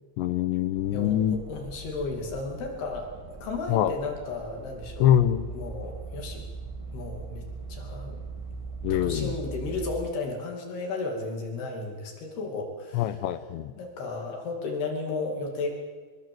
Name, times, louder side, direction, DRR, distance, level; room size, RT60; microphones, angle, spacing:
voice 1, 0.2-1.4 3.7-3.9 5.0-5.5 8.8-9.3 12.9-13.7, left 11 dB, 75° left, 13 dB, 3.0 m, -24 dB
sound 1, 0.7-10.0, right 2 dB, 25° right, 0.7 m, -46 dB
voice 2, 0.9-5.1 5.5-6.4 6.9-7.4 7.7-8.2 8.9-13.1 13.8-15.7, left 3 dB, 60° left, 3 dB, 4.4 m, -34 dB
sound 2, 4.8-10.1, right 4 dB, 80° right, 3.5 m, -39 dB
24.0 x 22.0 x 7.8 m, 1.5 s
omnidirectional pair, 5.4 m